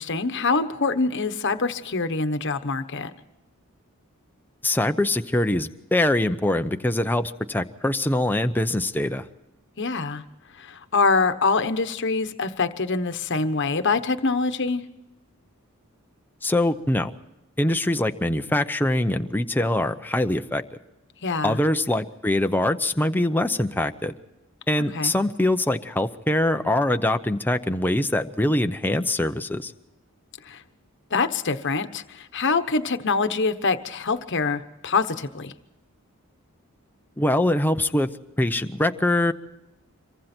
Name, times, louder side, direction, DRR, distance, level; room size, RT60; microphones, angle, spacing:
voice 1, 0.0-3.1 9.8-10.2 10.6-14.8 21.2-21.6 24.9-25.1 30.5-30.6 31.1-35.5, left 4 dB, 55° left, 9 dB, 1.2 m, -25 dB
voice 2, 4.6-9.2 16.4-17.2 17.6-20.6 21.4-24.1 24.7-29.7 37.2-38.1 38.4-39.3, left 1 dB, 10° left, 7 dB, 0.8 m, -23 dB
26.5 x 23.5 x 4.4 m, 0.93 s
head